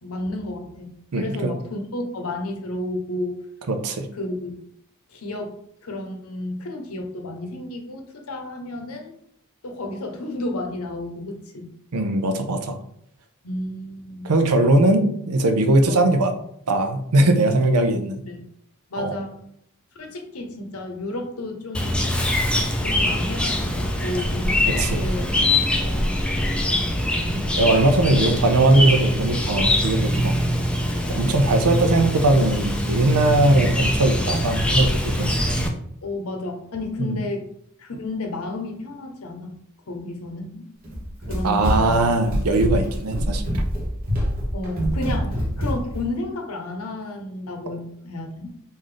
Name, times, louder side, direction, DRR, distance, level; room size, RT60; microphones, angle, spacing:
voice 1, 0.0-3.5 4.1-4.7 5.1-5.5 5.8-9.1 9.6-11.7 13.4-14.3 15.9-16.1 18.3-18.4 18.9-19.5 19.9-22.1 22.8-25.3 25.8-26.9 28.0-28.5 30.6-30.8 33.5-33.8 36.0-37.5 37.8-39.6 39.9-40.7 41.3-42.1 44.5-48.5, left 2 dB, 75° left, 4 dB, 0.7 m, -32 dB
voice 2, 1.1-1.5 3.7-4.1 11.9-12.8 14.2-16.3 16.7-18.2 19.0-19.2 24.7-25.1 27.3-30.3 31.1-35.6 37.0-37.2 41.4-43.6 45.1-45.2, right 2 dB, 90° right, 7 dB, 0.6 m, -20 dB
Chirp tweet, 21.7-35.7, left 1 dB, 5° left, 0.3 m, -23 dB
Run, 40.8-46.1, equal, 40° right, 1.0 m, -25 dB
3.2 x 2.6 x 3.8 m, 0.71 s
head